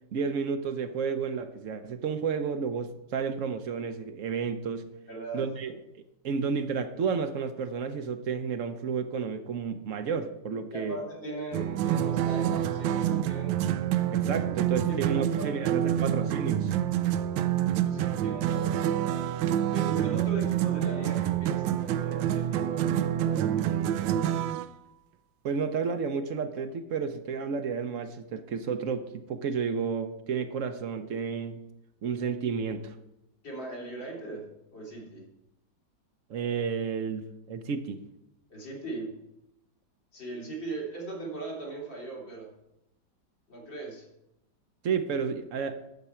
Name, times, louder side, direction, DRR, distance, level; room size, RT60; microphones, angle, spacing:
voice 1, 0.1-4.9 5.3-5.8 6.2-11.0 14.1-16.7 25.4-31.6 32.0-32.9 36.3-38.0 44.8-45.8, right 6 dB, 60° right, 9 dB, 0.9 m, -31 dB
voice 2, 5.1-5.4 10.7-13.6 14.7-16.0 17.8-19.3 19.7-24.3 33.4-34.5 34.7-35.2 38.5-39.1 40.1-42.5 43.5-44.1, right 2 dB, 80° left, -3 dB, 3.9 m, -39 dB
sound 1, 11.5-24.7, right 11 dB, 85° right, 1.3 m, -27 dB
12.0 x 8.0 x 4.4 m, 0.88 s
omnidirectional pair, 2.0 m